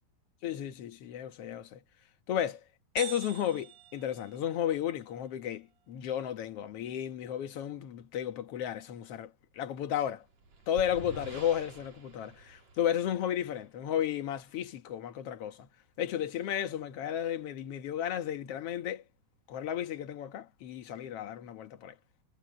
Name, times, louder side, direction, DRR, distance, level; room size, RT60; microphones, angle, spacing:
voice 1, 0.4-1.8 2.3-2.6 3.0-10.3 10.7-15.7 16.0-19.0 19.5-22.0, left 10 dB, 55° left, 1.9 m, -33 dB
sound 1, 3.0-4.9, right 11 dB, 85° right, 4.4 m, -45 dB
sound 2, 10.1-13.6, right 3 dB, 55° right, 4.9 m, -48 dB
omnidirectional pair, 3.9 m